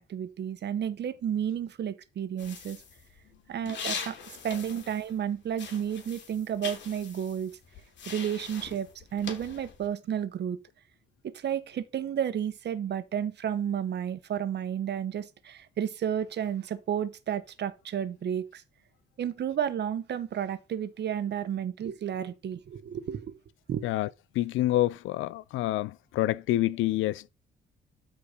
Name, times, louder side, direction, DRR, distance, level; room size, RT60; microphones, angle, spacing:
voice 1, 0.0-2.8 3.5-4.2 4.4-7.6 8.1-10.6 11.2-18.6 19.2-23.3 23.7-23.8, right 9 dB, 60° right, 1.4 m, -32 dB
sound 1, 2.4-5.3 5.5-9.9, left 6 dB, 65° left, 3.1 m, -41 dB
voice 2, 24.3-27.3, left 15 dB, 90° left, 0.5 m, -27 dB
12.5 x 4.7 x 5.3 m
cardioid pair, 90°, 20 cm